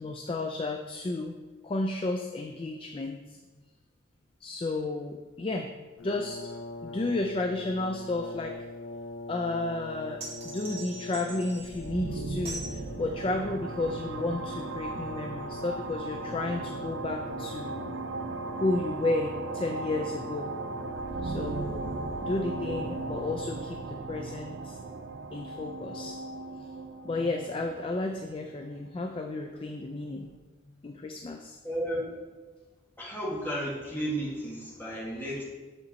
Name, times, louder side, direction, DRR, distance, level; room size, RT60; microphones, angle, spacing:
voice 1, 0.0-1.4 1.6-3.4 4.4-5.7 6.0-6.5 6.8-8.6 9.3-17.8 18.5-20.5 21.2-21.9 22.2-24.8 25.3-26.2 27.0-30.3 30.8-31.6, left 2 dB, 25° left, 3 dB, 0.3 m, -32 dB
Brass instrument, 6.0-23.8, left 2 dB, 80° left, 0.5 m, -43 dB
Rifle Cartridges clanging, 10.2-11.9 12.5-12.8, right 3 dB, 30° right, 1.3 m, -41 dB
sound 1, 11.6-29.3, right 3 dB, 65° right, 0.4 m, -37 dB
voice 2, 31.6-32.1 33.0-35.4, equal, 10° left, -6 dB, 1.6 m, -33 dB
6.6 x 5.0 x 4.1 m, 1.3 s
head